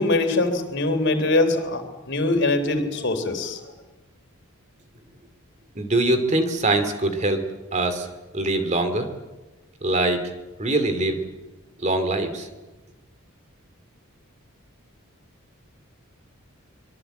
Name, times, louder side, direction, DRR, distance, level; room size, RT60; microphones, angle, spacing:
voice 1, 0.0-1.8 2.1-3.6, left 2 dB, 55° left, 6 dB, 3.5 m, -22 dB
voice 2, 5.8-7.4 7.7-8.1 8.3-9.1 9.8-10.2 10.6-11.2 11.8-12.5, right 2 dB, 35° right, 8 dB, 2.6 m, -23 dB
24.5 x 22.5 x 8.0 m, 1.2 s
head